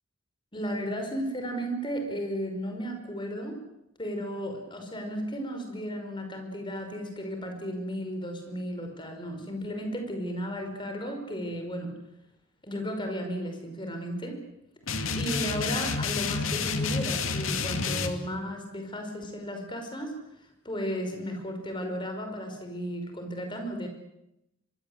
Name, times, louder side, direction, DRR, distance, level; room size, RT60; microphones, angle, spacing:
voice 1, 0.5-3.5 4.0-11.9 12.6-14.4 15.1-23.9, equal, 25° left, 5 dB, 5.5 m, -34 dB
sound 1, 14.9-18.1, left 4 dB, 80° left, 2.5 m, -29 dB
25.0 x 23.0 x 8.1 m, 0.87 s
head